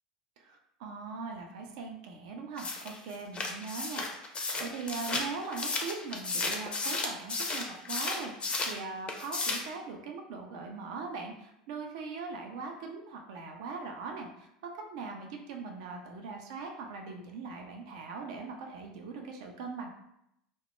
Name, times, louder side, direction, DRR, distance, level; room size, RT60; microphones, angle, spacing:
voice 1, 0.4-14.5 14.7-19.9, right 4 dB, 55° right, 3 dB, 0.4 m, -41 dB
sound 1, 2.6-8.8 9.1-9.7, left 3 dB, 25° left, 0.4 m, -34 dB
2.1 x 2.0 x 3.0 m, 0.79 s
figure-of-eight pair, 75°, 4 cm